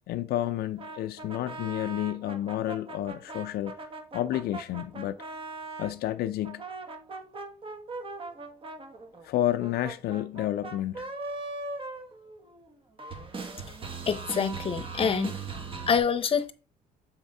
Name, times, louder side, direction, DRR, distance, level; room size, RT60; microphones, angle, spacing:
voice 1, 0.1-3.8 4.1-5.2 5.8-6.6 9.2-11.1, left 13 dB, 70° left, 0.5 m, -30 dB
sound 1, 0.8-5.9 6.4-12.7 13.0-16.0, right 3 dB, 30° right, 1.2 m, -39 dB
voice 2, 14.1-15.4 15.9-16.5, left 6 dB, 35° left, 0.9 m, -26 dB
7.3 x 3.5 x 5.3 m
cardioid pair, 110°, 17 cm